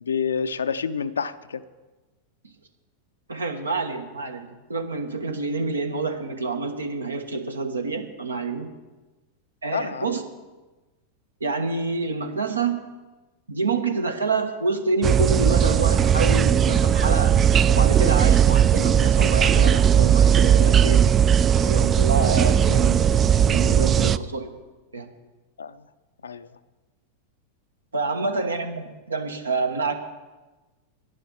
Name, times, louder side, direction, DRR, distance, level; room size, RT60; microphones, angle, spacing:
voice 1, 0.0-1.6 9.7-10.2 25.6-25.8 26.2-26.5, left 6 dB, 70° left, 13 dB, 0.5 m, -28 dB
voice 2, 3.3-8.7 9.6-10.2 11.4-12.8 13.5-17.4 17.7-21.1 21.7-23.1 23.5-24.5 24.9-25.1 27.9-30.0, right 3 dB, 75° right, 6 dB, 1.2 m, -27 dB
sound 1, 15.0-24.2, right 8 dB, 25° right, 0.3 m, -18 dB
11.0 x 10.5 x 6.3 m, 1.2 s
figure-of-eight pair, 90°, 0 cm